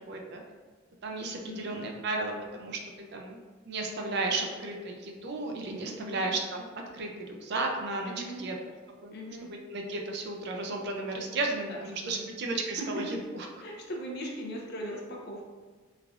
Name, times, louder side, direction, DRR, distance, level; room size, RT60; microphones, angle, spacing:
voice 1, 0.1-0.4 1.0-2.8 3.1-3.4 3.7-6.7 6.9-8.1 8.4-8.5 9.0-9.1 9.4-13.0, right 2 dB, 55° right, 2 dB, 0.4 m, -33 dB
voice 2, 1.3-1.7 5.8-6.3 8.0-8.4 9.1-9.5 11.7-12.3 12.8-13.3 13.6-15.4, equal, 50° left, 0 dB, 0.5 m, -39 dB
3.2 x 2.4 x 2.4 m, 1.4 s
head